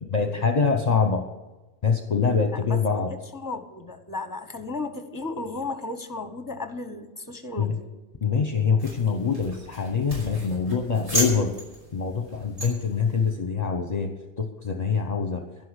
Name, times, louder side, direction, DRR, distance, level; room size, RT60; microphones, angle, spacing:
voice 1, 0.0-1.3 1.8-3.1 7.6-7.7 8.2-11.5 11.9-14.1 14.4-15.4, left 5 dB, 40° left, 5 dB, 1.0 m, -24 dB
voice 2, 2.5-3.0 3.3-7.9, left 3 dB, 20° left, 8 dB, 1.2 m, -34 dB
sound 1, 8.8-13.3, equal, 65° right, 5.9 m, -34 dB
11.5 x 11.0 x 8.1 m, 1.1 s
omnidirectional pair, 1.1 m